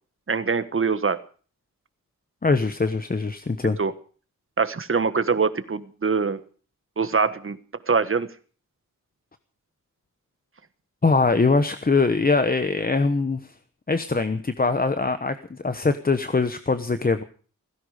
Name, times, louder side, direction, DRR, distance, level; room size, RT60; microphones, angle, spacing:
voice 1, 0.3-1.2 3.8-3.9 4.6-6.4 7.0-7.6 7.9-8.3, right 5 dB, 40° right, 12 dB, 1.4 m, -23 dB
voice 2, 2.4-3.8 11.0-13.5 13.9-17.2, left 3 dB, 30° left, 10 dB, 1.1 m, -22 dB
17.0 x 16.0 x 5.0 m, 0.42 s
wide cardioid pair, 130°, 32 cm